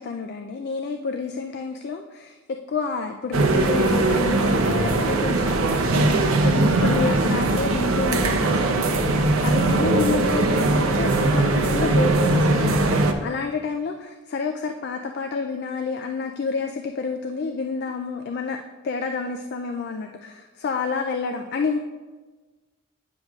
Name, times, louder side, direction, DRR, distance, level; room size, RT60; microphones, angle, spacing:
voice 1, 0.0-9.2 9.4-18.6 18.8-21.8, left 4 dB, 50° left, 5 dB, 0.3 m, -29 dB
sound 1, 3.3-13.1, right 2 dB, 80° right, 0.6 m, -20 dB
9.6 x 6.4 x 2.3 m, 1.3 s
head